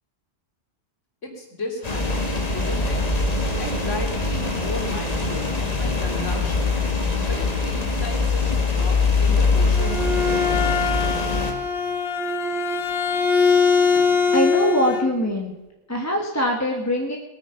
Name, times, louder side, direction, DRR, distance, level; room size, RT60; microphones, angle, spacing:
voice 1, 1.2-3.0 3.6-6.7 7.3-10.5, left 2 dB, 90° left, 0 dB, 3.3 m, -35 dB
sound 1, 1.8-11.5, left 3 dB, 35° left, 1.8 m, -23 dB
Bowed string instrument, 9.6-15.1, left 5 dB, 55° left, 1.2 m, -22 dB
voice 2, 14.3-15.5 15.9-17.2, equal, 15° left, 0 dB, 1.4 m, -22 dB
19.5 x 9.2 x 5.7 m, 1.0 s
omnidirectional pair, 1.2 m